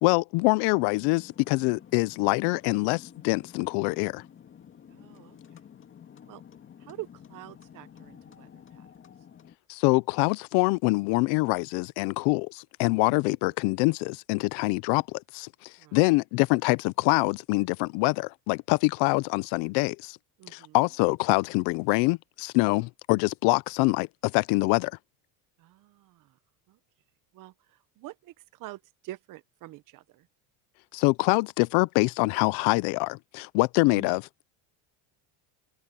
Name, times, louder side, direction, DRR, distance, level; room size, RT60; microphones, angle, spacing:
voice 1, 0.0-4.2 9.7-20.2 20.5-24.9 30.9-34.2, left 25 dB, 75° left, 0.7 m, -25 dB
sound 1, 0.7-9.5, left 8 dB, 30° left, 2.3 m, -51 dB
voice 2, 4.9-5.6 6.3-6.4 6.8-8.9 13.0-13.1 15.8-16.0 20.4-20.8 25.6-26.4 26.7-26.8 27.3-30.3 33.8-34.2, right 17 dB, 50° right, 1.1 m, -46 dB
cardioid pair, 140°, 40 cm